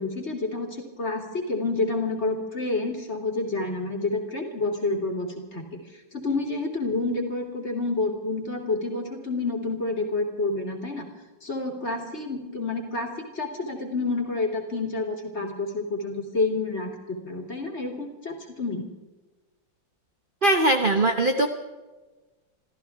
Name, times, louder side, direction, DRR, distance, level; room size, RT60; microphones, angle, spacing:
voice 1, 0.0-5.8 6.1-11.1 11.4-18.8, left 3 dB, 35° left, 2 dB, 3.2 m, -29 dB
voice 2, 20.4-21.5, right 1 dB, 35° right, 5 dB, 0.9 m, -20 dB
27.5 x 14.5 x 3.5 m, 1.2 s
omnidirectional pair, 2.1 m